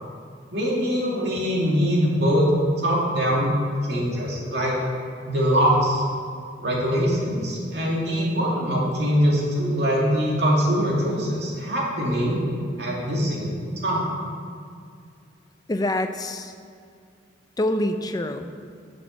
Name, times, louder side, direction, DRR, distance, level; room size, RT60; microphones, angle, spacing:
voice 1, 0.5-2.5 2.8-3.6 3.8-4.7 5.3-6.0 6.6-12.4 12.8-13.6 13.8-14.1, equal, 65° right, -4 dB, 2.3 m, -23 dB
voice 2, 15.7-16.5 17.6-18.7, left 1 dB, 20° left, 7 dB, 0.5 m, -26 dB
7.6 x 7.1 x 6.4 m, 2.3 s
head